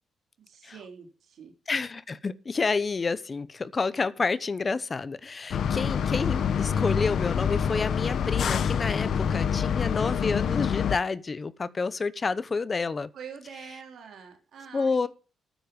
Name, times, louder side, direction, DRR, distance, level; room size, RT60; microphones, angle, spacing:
voice 1, 0.5-1.5 13.1-15.1, right 7 dB, 55° right, 3.2 m, -45 dB
voice 2, 1.7-13.1 14.7-15.1, left 4 dB, 25° left, 0.8 m, -29 dB
sound 1, 5.5-11.0, left 7 dB, 55° left, 0.9 m, -26 dB
13.0 x 9.2 x 5.3 m
cardioid pair, 160°, 0 cm